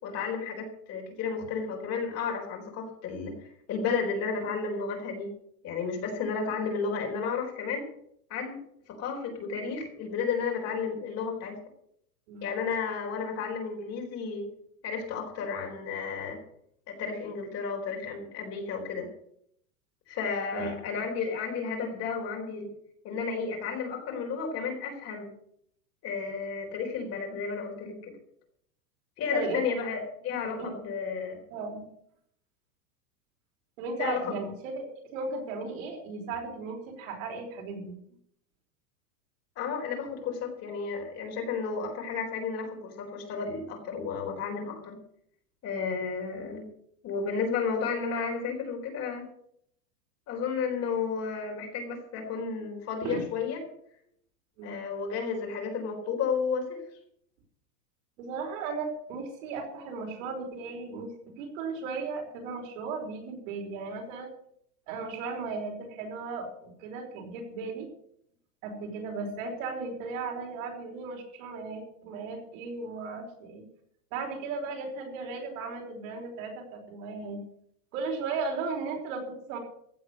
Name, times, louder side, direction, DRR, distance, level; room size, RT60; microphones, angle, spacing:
voice 1, 0.0-5.3 5.6-7.9 8.3-8.6 8.9-11.6 12.4-14.5 14.8-16.4 16.9-19.1 20.1-22.7 23.0-25.3 26.0-28.2 29.2-31.4 34.0-34.3 39.6-45.0 45.6-46.7 47.0-49.3 50.3-53.6 54.6-56.8, left 5 dB, 30° left, 3 dB, 4.1 m, -32 dB
voice 2, 29.3-29.6 30.6-30.7 31.5-31.9 33.8-38.0 53.0-53.2 54.6-54.8 58.2-61.1 61.4-64.3 64.9-67.9 68.6-73.6 74.1-77.4 77.9-79.6, right 4 dB, 55° right, 2 dB, 5.0 m, -36 dB
15.5 x 8.0 x 8.2 m, 0.69 s
supercardioid pair, 150°, 48 cm